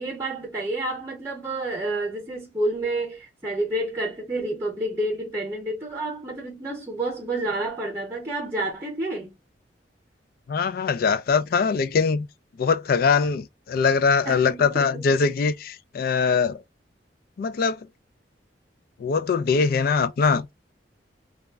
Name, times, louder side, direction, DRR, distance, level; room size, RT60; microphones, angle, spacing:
voice 1, 0.0-9.3 14.2-15.2, right 2 dB, 15° right, 0.8 m, -29 dB
voice 2, 10.5-12.3 12.6-16.6 17.4-17.9 19.0-20.5, left 5 dB, 55° left, 0.3 m, -22 dB
2.3 x 2.1 x 3.4 m
head